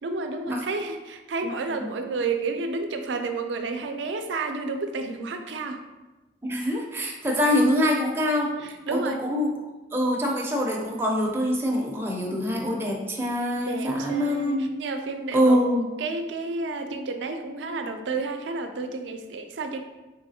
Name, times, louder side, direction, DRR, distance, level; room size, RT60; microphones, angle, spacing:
voice 1, 0.0-5.8 8.6-9.2 13.6-15.6 16.0-19.8, right 3 dB, 85° right, 6 dB, 0.4 m, -31 dB
voice 2, 6.4-8.5 8.9-9.5 9.9-14.7 15.3-15.9, equal, 15° right, -2 dB, 0.4 m, -24 dB
3.8 x 3.4 x 2.7 m, 1.1 s
head